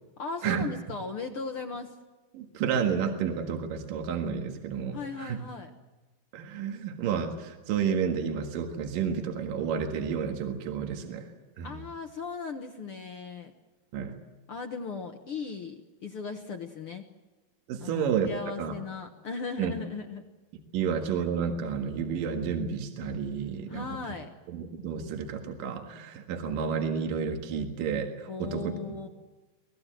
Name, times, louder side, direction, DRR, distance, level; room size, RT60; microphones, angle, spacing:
voice 1, 0.2-2.0 4.9-5.7 11.6-13.5 14.5-17.0 17.8-20.2 23.7-24.3 28.3-29.1, left 4 dB, 60° left, 5 dB, 1.4 m, -37 dB
voice 2, 2.3-5.4 6.3-11.3 11.6-11.8 13.9-14.1 17.7-18.7 19.6-19.7 20.7-23.8 24.5-29.1, right 7 dB, 70° right, 4 dB, 3.3 m, -31 dB
25.0 x 19.5 x 7.7 m, 1.2 s
omnidirectional pair, 4.2 m